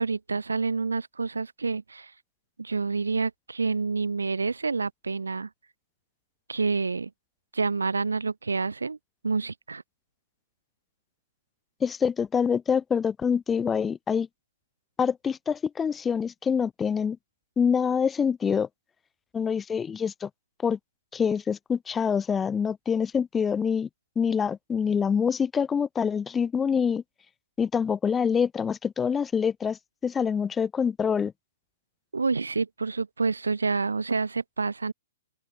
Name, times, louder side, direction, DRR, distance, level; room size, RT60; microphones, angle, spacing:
voice 1, 0.0-2.1 2.6-5.5 6.5-7.1 7.5-9.0 9.2-9.8 32.1-34.9, right 4 dB, 70° right, 3.1 m, -28 dB
voice 2, 11.8-14.3 15.0-17.2 17.6-18.7 19.3-20.3 20.6-20.8 21.1-23.9 24.2-27.0 27.6-31.3, left 6 dB, 10° left, 2.3 m, -26 dB
open air
figure-of-eight pair, 115°, 0 cm